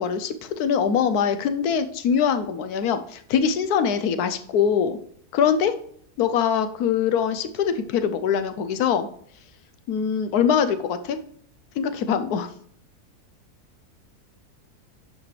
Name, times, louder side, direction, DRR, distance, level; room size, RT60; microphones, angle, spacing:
voice 1, 0.0-5.0 5.3-5.8 6.2-9.1 9.9-11.2 11.8-12.5, left 7 dB, 75° left, 9 dB, 1.2 m, -23 dB
11.5 x 4.8 x 3.3 m, 0.64 s
omnidirectional pair, 1.7 m